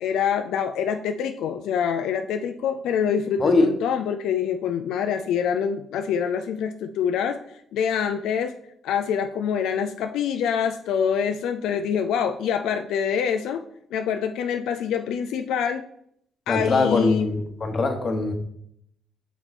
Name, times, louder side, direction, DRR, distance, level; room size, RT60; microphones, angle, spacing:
voice 1, 0.0-7.4 7.7-8.5 8.8-13.6 13.9-15.8 16.5-17.3, left 7 dB, 85° left, 7 dB, 0.3 m, -25 dB
voice 2, 16.5-18.3, left 3 dB, 40° left, 5 dB, 1.1 m, -22 dB
6.0 x 4.5 x 4.1 m, 0.72 s
cardioid pair, 90°, 0 cm